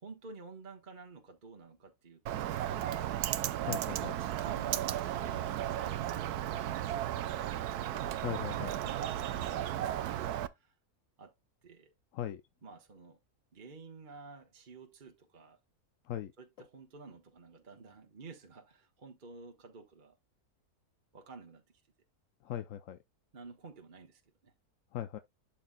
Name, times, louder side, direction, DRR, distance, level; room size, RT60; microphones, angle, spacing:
voice 1, 0.0-7.7 8.4-10.8 11.2-11.3 11.6-11.9 12.6-13.2 13.5-15.6 16.4-20.1 21.1-21.8 23.3-24.5, right 4 dB, 35° right, 1.2 m, -52 dB
Bird, 2.3-10.5, right 11 dB, 85° right, 1.2 m, -34 dB
voice 2, 3.6-4.1 8.2-8.9 12.1-12.4 16.0-16.3 22.4-23.0 24.9-25.2, left 11 dB, 65° left, 0.9 m, -39 dB
12.0 x 4.6 x 2.2 m
omnidirectional pair, 1.6 m